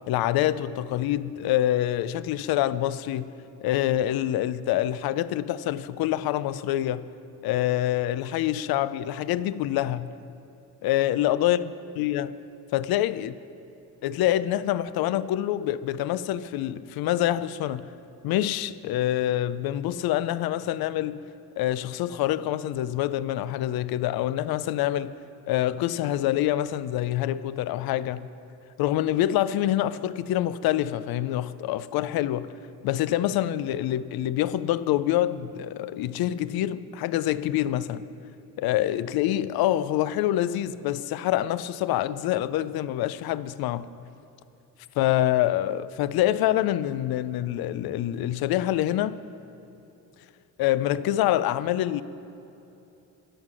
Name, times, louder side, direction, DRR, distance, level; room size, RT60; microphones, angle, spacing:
voice 1, 0.1-3.3 3.6-7.1 7.4-10.1 10.8-11.6 12.0-12.3 12.7-13.3 14.0-17.9 18.2-21.2 21.6-25.1 25.5-28.3 28.8-32.5 32.8-38.0 38.6-43.9 45.0-49.2 50.6-52.0, left 13 dB, 75° left, 0.5 m, -26 dB
13.0 x 9.7 x 6.1 m
cardioid pair, 100°, 36 cm